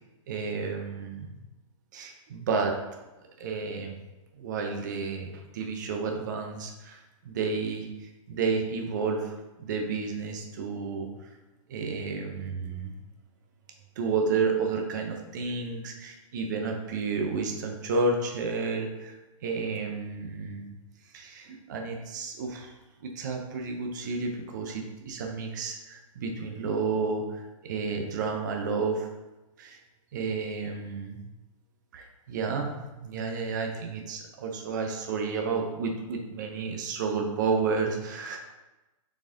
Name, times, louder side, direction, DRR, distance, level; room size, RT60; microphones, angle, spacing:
voice 1, 0.3-1.4 1.9-3.0 3.4-4.0 4.3-11.3 11.7-13.0 14.0-19.2 19.4-20.7 21.1-22.7 23.0-29.1 29.6-29.8 30.1-31.2 31.9-38.4, right 4 dB, 35° right, 2 dB, 0.7 m, -31 dB
6.3 x 4.2 x 3.7 m, 1.1 s
hypercardioid pair, 180°, 18 cm